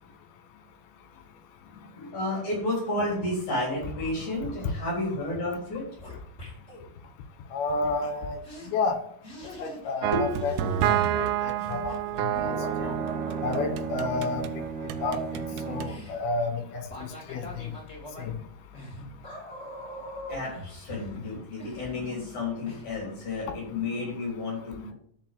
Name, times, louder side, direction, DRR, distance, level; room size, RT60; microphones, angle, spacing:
voice 1, 2.0-5.9 10.1-10.3 20.3-24.9, left 2 dB, 50° left, -4 dB, 4.9 m, -31 dB
sound 1, 5.7-6.8 8.0-8.1 8.4-8.7 9.2-10.0 10.3-13.7 14.8-22.3 22.6-22.8, left 1 dB, 15° left, 3.0 m, -43 dB
voice 2, 7.5-8.4 8.7-9.0 9.6-10.5 10.8-11.9 12.2-12.9 13.4-14.5 15.0-15.2 15.6-17.7 18.2-18.3 22.0-22.2, left 3 dB, 80° left, 7 dB, 3.3 m, -31 dB
sound 2, 10.0-14.5 14.9-15.9, right 11 dB, 80° right, 2.5 m, -29 dB
Bowed string instrument, 12.3-16.1, right 5 dB, 65° right, 2.0 m, -34 dB
12.5 x 4.5 x 7.5 m, 0.64 s
omnidirectional pair, 4.5 m